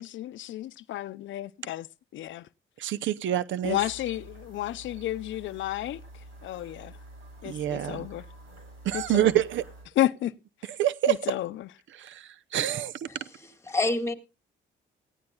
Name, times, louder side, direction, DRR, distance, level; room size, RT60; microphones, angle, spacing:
voice 1, 0.0-1.9 2.1-2.5 3.6-6.0 6.4-7.0 7.4-8.2 8.9-9.4 10.0-10.3 11.1-11.7, left 14 dB, 75° left, 0.6 m, -31 dB
voice 2, 2.8-3.8 7.4-8.1 8.8-9.6 10.8-11.2 12.0-12.2 12.5-13.1, right 12 dB, 75° right, 0.7 m, -26 dB
sound 1, 3.6-9.9, right 1 dB, 90° right, 7.4 m, -48 dB
voice 3, 13.1-14.1, left 2 dB, 15° left, 1.8 m, -29 dB
18.5 x 15.0 x 2.3 m
cardioid pair, 90°, 20 cm